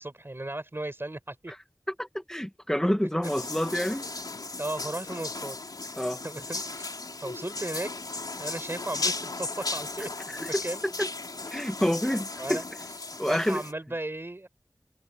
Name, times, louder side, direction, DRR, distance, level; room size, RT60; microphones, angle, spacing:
voice 1, 0.0-1.5 4.6-5.6 6.2-7.9 8.4-10.8 12.4-12.6 13.2-14.5, right 1 dB, 35° right, 5.0 m, -36 dB
voice 2, 2.0-4.1 6.0-6.2 10.4-11.1 11.5-12.6 13.2-13.6, equal, 10° left, 1.8 m, -28 dB
sound 1, 3.2-13.7, left 3 dB, 80° left, 4.0 m, -36 dB
wide cardioid pair, 55°, 7 cm